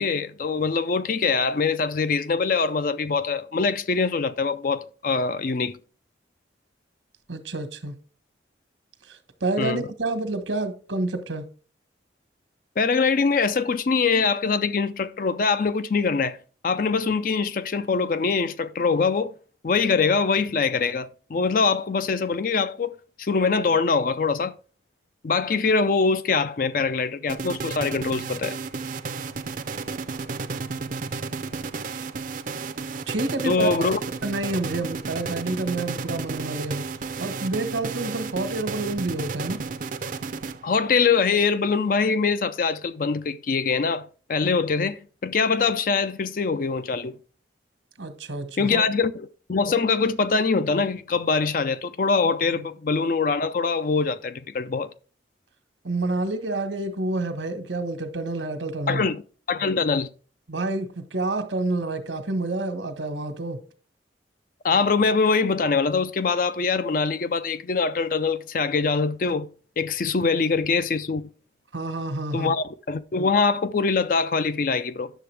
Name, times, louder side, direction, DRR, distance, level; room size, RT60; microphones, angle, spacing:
voice 1, 0.0-5.8 9.6-9.9 12.8-16.4 16.6-19.3 19.6-22.9 23.2-24.5 25.2-28.6 33.4-34.0 40.6-47.1 48.6-54.9 58.9-59.2 59.5-60.1 64.6-69.5 69.8-71.2 72.3-75.1, left 4 dB, 45° left, 0.4 m, -23 dB
voice 2, 7.3-7.9 9.1-11.5 33.1-33.9 34.2-36.9 37.2-39.6 48.0-48.8 52.5-52.7 55.8-59.0 60.5-63.6 71.7-72.5, right 2 dB, 90° right, 1.3 m, -28 dB
sound 1, 27.3-40.9, right 4 dB, 45° right, 0.5 m, -33 dB
10.0 x 6.8 x 3.3 m
head